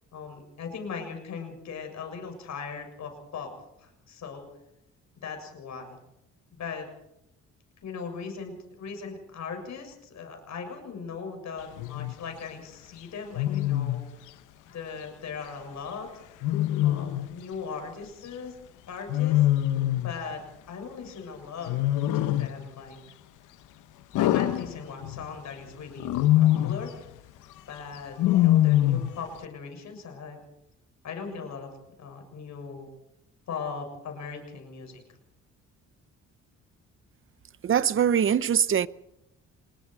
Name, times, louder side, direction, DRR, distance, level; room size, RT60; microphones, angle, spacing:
voice 1, 0.1-3.5 3.8-4.5 5.2-6.0 6.5-6.9 7.8-14.0 14.7-16.1 16.8-18.6 18.9-19.5 19.9-20.4 20.7-21.7 22.1-23.0 24.2-26.1 26.3-27.1 27.6-30.4 31.0-31.7 32.0-32.9 33.5-35.0, left 5 dB, 65° left, 7.2 m, -39 dB
Wild animals, 11.8-12.1 13.4-14.1 16.4-17.3 19.1-20.2 21.7-22.6 24.1-25.3 26.0-26.9 28.2-29.2, left 14 dB, 90° left, 1.0 m, -23 dB
voice 2, 37.6-38.9, right 8 dB, 45° right, 0.8 m, -22 dB
26.0 x 21.5 x 4.9 m
cardioid pair, 90°, 30 cm